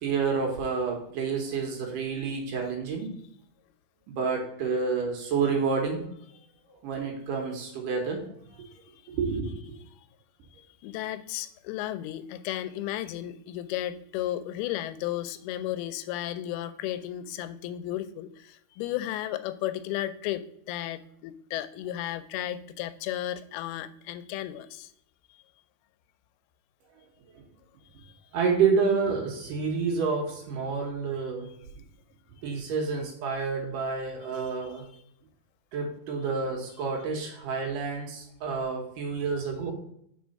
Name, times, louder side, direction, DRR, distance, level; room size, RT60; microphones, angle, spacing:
voice 1, 0.0-3.1 4.1-6.0 6.8-8.2 8.6-8.7 9.1-9.5 28.3-31.5 32.4-34.8 35.7-39.7, right 5 dB, 70° right, 1 dB, 2.4 m, -29 dB
voice 2, 10.6-24.9 28.0-28.2 31.4-31.6 34.3-34.8, left 13 dB, 85° left, 11 dB, 2.5 m, -34 dB
4.9 x 4.5 x 5.2 m, 0.72 s
omnidirectional pair, 4.4 m